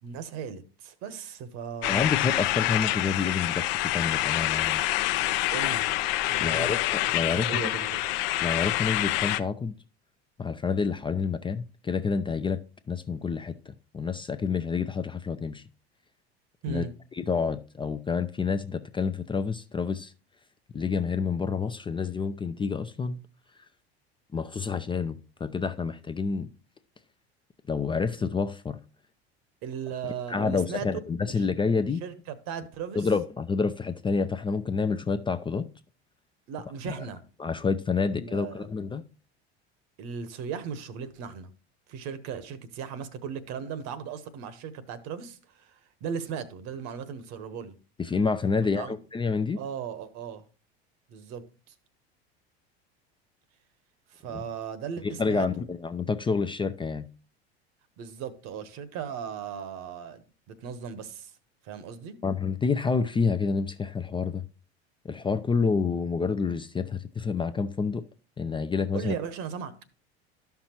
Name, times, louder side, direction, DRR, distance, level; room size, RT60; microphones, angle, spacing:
voice 1, 0.0-2.0 5.5-5.9 6.3-6.7 7.4-8.0 16.6-16.9 29.6-30.9 31.3-31.5 32.0-33.1 36.5-37.2 38.1-38.7 40.0-41.5 41.9-47.7 48.7-49.0 49.6-50.4 51.1-51.7 54.1-55.5 58.0-61.3 61.6-62.2 68.9-69.8, right 7 dB, 55° right, 1.2 m, -37 dB
sound 1, 1.8-9.4, left 16 dB, 60° left, 0.7 m, -27 dB
voice 2, 1.9-4.8 6.4-7.7 8.4-9.7 10.4-12.6 12.9-15.6 16.7-16.8 17.1-20.1 20.7-23.2 24.3-26.5 27.7-28.8 30.0-32.0 32.9-35.7 36.9-37.0 37.4-39.0 48.0-49.6 54.3-54.4 55.0-57.1 62.2-64.4 65.0-68.0 68.4-69.1, left 5 dB, 15° left, 0.5 m, -28 dB
13.0 x 5.8 x 3.0 m
hypercardioid pair, 80°, 32 cm